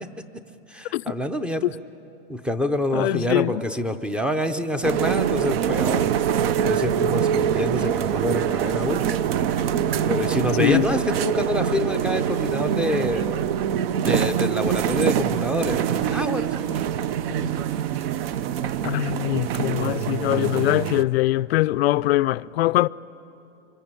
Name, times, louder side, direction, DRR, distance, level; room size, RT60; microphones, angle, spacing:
voice 1, 0.7-1.7 2.3-6.1 6.6-9.1 10.1-13.5 14.0-16.8 17.6-17.7, left 1 dB, 5° right, 0.6 m, -26 dB
voice 2, 2.9-3.6 10.6-11.0 18.8-22.9, left 17 dB, 60° left, 0.5 m, -22 dB
sound 1, 4.8-21.0, right 9 dB, 55° right, 0.9 m, -24 dB
26.5 x 24.5 x 8.9 m
hypercardioid pair, 145°, 36 cm